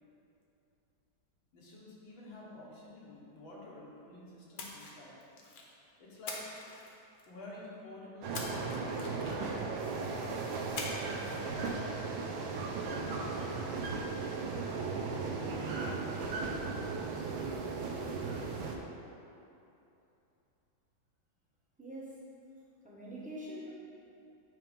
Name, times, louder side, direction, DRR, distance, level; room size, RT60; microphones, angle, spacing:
voice 1, 1.5-5.2 6.0-6.5 7.3-9.8 11.3-14.0, left 1 dB, 90° left, -5 dB, 2.1 m, -50 dB
Splash splatter, 4.6-5.7 6.3-7.4 8.3-9.6 10.8-11.3 11.5-11.7, left 3 dB, 60° left, 1.2 m, -43 dB
sound 1, 8.2-18.8, right 4 dB, 90° right, 1.5 m, -36 dB
voice 2, 21.8-22.2 22.8-23.7, equal, 5° right, -7 dB, 0.6 m, -44 dB
8.9 x 3.0 x 5.1 m, 2.8 s
omnidirectional pair, 2.1 m